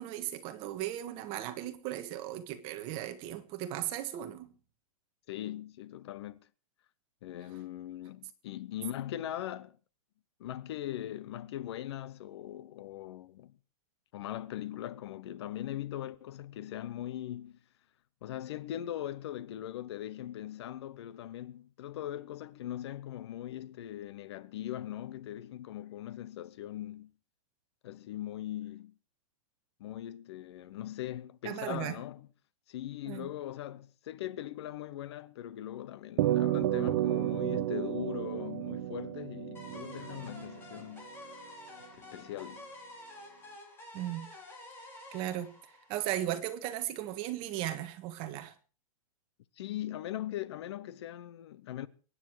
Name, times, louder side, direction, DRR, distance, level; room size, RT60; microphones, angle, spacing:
voice 1, 0.0-4.5 31.4-32.0 33.0-33.3 43.9-44.3 45.1-45.5 45.9-48.5, right 13 dB, 30° right, 1.6 m, -36 dB
voice 2, 5.3-6.5 7.2-9.8 10.4-13.5 14.1-17.6 18.2-27.1 27.8-28.9 29.8-32.3 32.7-41.4 41.9-42.7 49.6-51.9, left 12 dB, 50° left, 0.8 m, -40 dB
sound 1, 36.2-40.8, right 13 dB, 45° right, 0.9 m, -31 dB
sound 2, 39.5-46.5, left 1 dB, 15° left, 3.6 m, -50 dB
23.0 x 10.0 x 4.7 m
hypercardioid pair, 165°, 18 cm